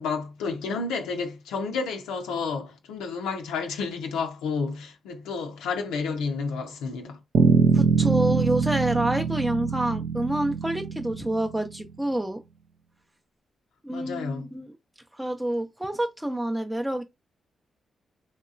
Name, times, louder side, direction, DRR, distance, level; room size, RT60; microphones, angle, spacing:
voice 1, 0.0-7.2 13.9-14.5, left 4 dB, 85° left, 0.4 m, -31 dB
Bass guitar, 7.3-11.8, right 6 dB, 75° right, 0.4 m, -23 dB
voice 2, 7.7-12.4 13.8-14.7 15.1-17.0, right 1 dB, 10° right, 0.5 m, -28 dB
3.0 x 2.8 x 2.4 m
supercardioid pair, 45°, 0 cm